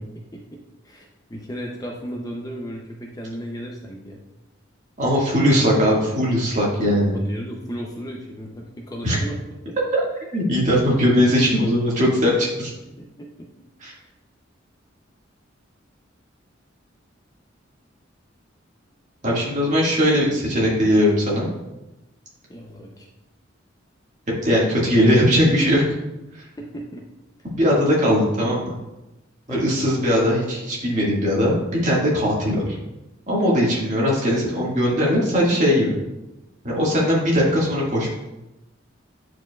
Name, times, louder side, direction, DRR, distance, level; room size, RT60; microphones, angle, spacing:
voice 1, 0.2-4.2 7.1-9.4 13.0-13.5 14.0-14.1 22.5-23.1 26.6-27.0 29.5-29.8, equal, 20° left, 0 dB, 0.6 m, -35 dB
voice 2, 5.0-7.2 9.0-9.2 10.3-12.7 13.8-13.9 19.2-21.5 24.4-25.8 27.5-28.8 29.5-31.6 31.8-32.7 33.3-36.0 36.6-38.1, equal, 40° right, -4 dB, 1.8 m, -19 dB
9.6 x 4.7 x 2.3 m, 0.98 s
head